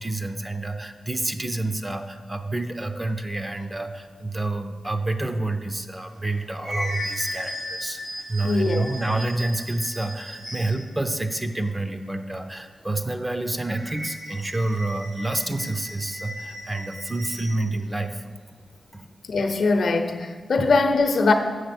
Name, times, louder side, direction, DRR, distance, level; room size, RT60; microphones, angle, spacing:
voice 1, 0.0-8.0 8.3-18.2 18.9-19.1 20.6-20.7, right 2 dB, 15° right, 7 dB, 0.5 m, -28 dB
sound 1, 6.1-10.9 13.6-17.6, left 1 dB, 80° right, 2.9 m, -36 dB
voice 2, 8.4-8.8 19.3-21.3, left 3 dB, 65° left, 6 dB, 0.7 m, -21 dB
7.9 x 6.1 x 6.0 m, 1.5 s
wide cardioid pair, 140°, 0 cm